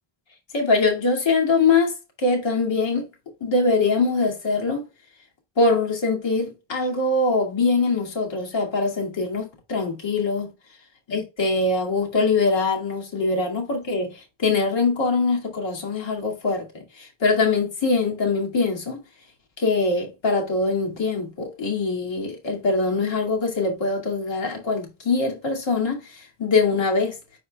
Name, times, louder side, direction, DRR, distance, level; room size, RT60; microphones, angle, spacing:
voice 1, 0.5-3.1 3.4-4.9 5.6-10.5 11.1-16.7 16.9-19.0 19.6-27.2, left 3 dB, 65° left, 2.4 m, -23 dB
9.5 x 4.4 x 2.3 m
wide cardioid pair, 145°, 48 cm